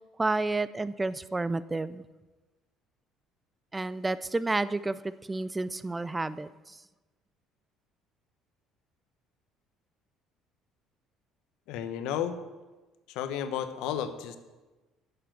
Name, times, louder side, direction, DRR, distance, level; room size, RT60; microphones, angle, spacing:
voice 1, 0.2-2.0 3.7-6.8, right 2 dB, 10° right, 17 dB, 0.3 m, -30 dB
voice 2, 11.7-12.4 13.1-14.4, left 9 dB, 80° left, 10 dB, 0.9 m, -32 dB
9.5 x 6.8 x 7.7 m, 1.2 s
cardioid pair, 140°, 0 cm